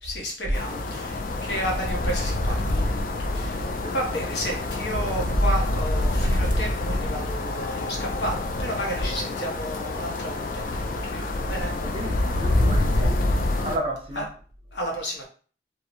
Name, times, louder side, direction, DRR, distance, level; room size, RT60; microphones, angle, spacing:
voice 1, 0.0-3.0 3.3-3.7 3.9-11.7 14.2-14.3 14.7-15.2, equal, 75° left, 0.8 m, -32 dB
sound 1, 0.5-13.8, left 1 dB, 50° left, 0.3 m, -26 dB
sound 2, 4.3-10.2, equal, 25° left, 1.3 m, -33 dB
voice 2, 11.8-14.3, right 1 dB, 30° right, 0.5 m, -33 dB
2.6 x 2.0 x 2.9 m
head